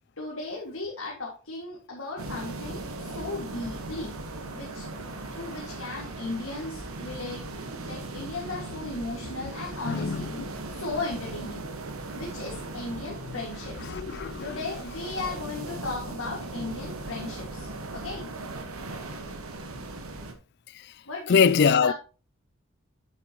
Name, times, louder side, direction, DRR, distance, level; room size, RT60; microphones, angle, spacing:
voice 1, 0.2-4.1 4.5-4.9 5.3-7.4 7.8-10.3 10.7-11.6 12.1-13.9 14.4-18.3 21.1-21.9, left 3 dB, 70° left, 2.0 m, -36 dB
sound 1, 2.2-20.3, right 2 dB, 80° right, 1.4 m, -38 dB
voice 2, 9.9-10.5 13.9-14.4 21.3-21.9, left 6 dB, 50° left, 0.4 m, -22 dB
9.0 x 8.0 x 3.0 m
head